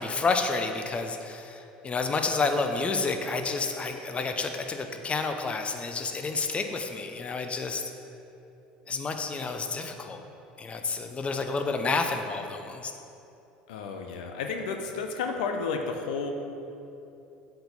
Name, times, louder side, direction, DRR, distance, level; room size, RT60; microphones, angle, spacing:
voice 1, 0.0-1.6 1.8-7.8 8.9-10.2 10.6-12.9, left 4 dB, 25° left, 6 dB, 0.7 m, -30 dB
voice 2, 13.7-16.3, left 5 dB, 70° left, 4 dB, 0.7 m, -32 dB
7.6 x 4.5 x 7.1 m, 2.9 s
hypercardioid pair, 70°, 5 cm